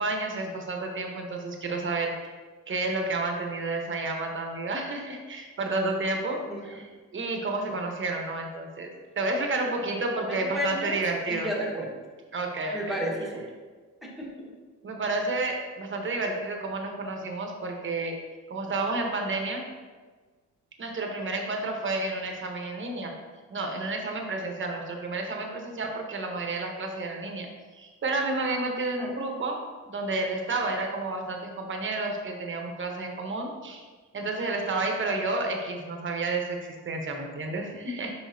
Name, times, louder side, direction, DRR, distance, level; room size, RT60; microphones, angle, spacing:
voice 1, 0.0-2.3 2.7-8.9 9.2-11.5 12.3-12.9 14.8-18.2 18.5-19.6 20.8-23.1 23.5-29.6 29.9-33.8 34.1-38.1, right 2 dB, 40° right, 2 dB, 1.2 m, -31 dB
voice 2, 6.5-6.8 10.1-11.0 11.3-11.9 12.7-13.5 14.0-14.5 29.0-29.1, equal, ahead, -3 dB, 1.6 m, -32 dB
6.2 x 5.6 x 2.8 m, 1.4 s
cardioid pair, 90°, 30 cm